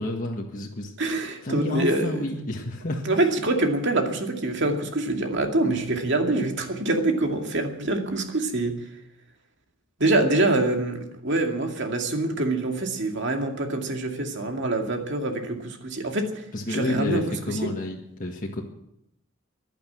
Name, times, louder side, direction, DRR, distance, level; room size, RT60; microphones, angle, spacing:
voice 1, 0.0-0.9 1.4-3.1 16.5-18.6, left 1 dB, 40° left, -1 dB, 1.7 m, -30 dB
voice 2, 1.0-2.1 3.1-8.8 10.0-17.7, right 2 dB, 65° right, 3 dB, 2.4 m, -25 dB
15.5 x 10.5 x 7.7 m, 0.80 s
head